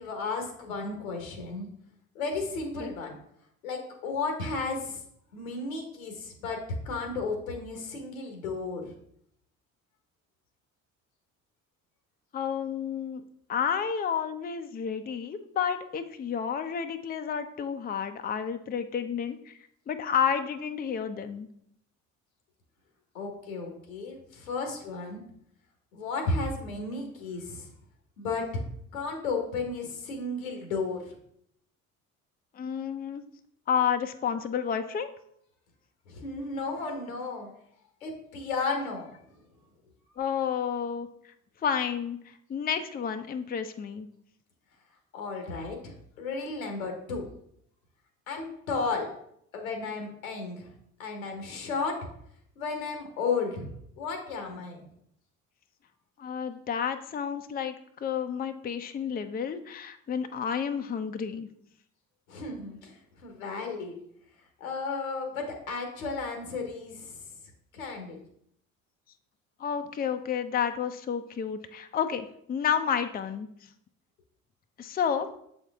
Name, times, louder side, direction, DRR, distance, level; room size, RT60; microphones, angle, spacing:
voice 1, 0.0-1.7 2.1-3.2 3.6-5.0 5.3-8.9 23.1-25.2 25.9-27.7 28.2-28.6 28.9-31.1 36.1-37.5 38.0-39.1 45.1-47.3 48.3-49.1 49.5-50.7 51.0-52.1 52.6-53.7 54.0-54.9 62.3-64.0 64.6-67.2 67.7-68.2, left 4 dB, 85° left, 4 dB, 1.2 m, -33 dB
voice 2, 12.3-13.2 13.5-19.6 19.9-21.5 32.5-33.2 33.7-35.1 40.2-41.1 41.6-44.1 56.2-57.8 58.0-61.5 69.6-73.5 74.8-75.4, left 7 dB, 25° left, 8 dB, 0.5 m, -30 dB
7.1 x 4.4 x 3.5 m, 0.71 s
hypercardioid pair, 55°, 40 cm